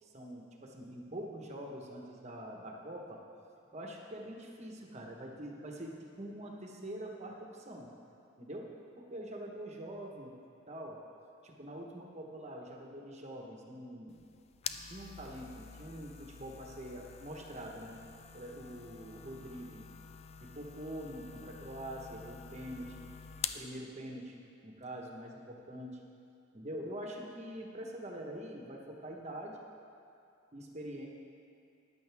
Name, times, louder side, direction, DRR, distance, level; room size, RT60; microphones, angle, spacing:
voice 1, 0.0-3.2 3.7-7.9 8.4-8.7 8.9-10.3 10.7-11.0 11.4-14.2 14.8-18.0 18.3-19.8 20.4-23.1 23.5-26.0 26.5-29.6 30.5-31.1, right 1 dB, 35° right, 0 dB, 1.2 m, -44 dB
sound 1, 14.1-23.7, left 7 dB, 30° left, 0.3 m, -47 dB
14.0 x 10.0 x 3.5 m, 2.5 s
head